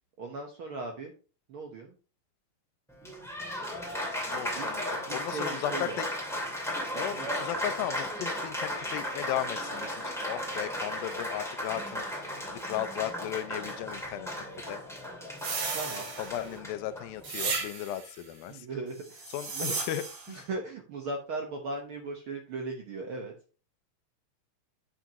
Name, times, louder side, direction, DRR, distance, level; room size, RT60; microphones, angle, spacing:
voice 1, 0.2-1.1 1.5-1.9 4.5-4.7 5.1-6.0 7.2-7.3 15.7-16.1 18.5-19.2 19.5-19.8 20.3-23.3, right 3 dB, 85° right, 2 dB, 1.1 m, -38 dB
Applause, 2.9-17.6, equal, ahead, 1.6 m, -35 dB
voice 2, 4.3-6.0 6.9-14.3 14.7-14.8 16.2-18.7 19.3-20.4, left 12 dB, 85° left, 12 dB, 2.5 m, -36 dB
sound 1, 15.4-16.6 17.2-18.1 19.1-20.3, right 4 dB, 70° right, 3.7 m, -34 dB
10.5 x 6.0 x 2.9 m, 0.36 s
omnidirectional pair, 4.1 m